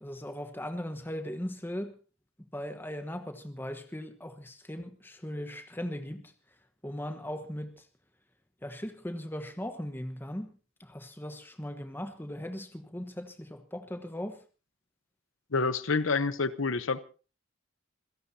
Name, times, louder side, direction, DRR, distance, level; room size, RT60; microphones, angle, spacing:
voice 1, 0.0-1.9 2.5-6.3 6.8-7.8 8.6-10.5 10.8-14.4, equal, 10° left, 1.2 m, -38 dB
voice 2, 15.5-17.0, left 4 dB, 80° left, 0.9 m, -28 dB
27.0 x 16.5 x 2.8 m
head